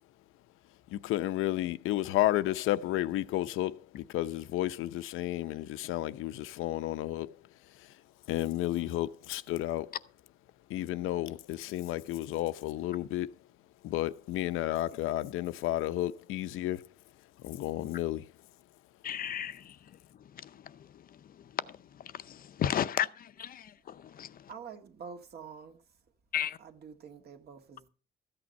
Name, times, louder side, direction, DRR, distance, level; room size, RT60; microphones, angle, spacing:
voice 1, 0.9-8.0 8.3-10.0 10.7-13.3 13.8-16.9 17.4-18.3, left 15 dB, 90° left, 0.7 m, -32 dB
voice 2, 19.0-19.8 20.2-23.1 23.4-24.5 26.3-26.6, left 10 dB, 45° left, 0.6 m, -35 dB
voice 3, 24.5-26.0 26.6-27.9, right 6 dB, 50° right, 1.9 m, -47 dB
14.0 x 8.8 x 5.3 m
cardioid pair, 150°, 20 cm